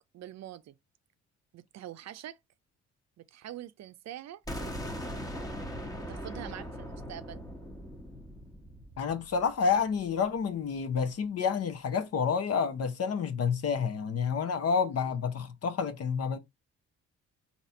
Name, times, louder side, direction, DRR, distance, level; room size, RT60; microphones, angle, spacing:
voice 1, 0.1-0.8 1.5-2.4 3.2-4.4 6.0-7.4 15.1-15.2, right 12 dB, 60° right, 0.5 m, -44 dB
sound 1, 4.5-10.3, equal, 10° left, 1.2 m, -40 dB
voice 2, 9.0-16.4, left 6 dB, 55° left, 0.9 m, -29 dB
4.2 x 2.9 x 4.2 m
cardioid pair, 90°, 30 cm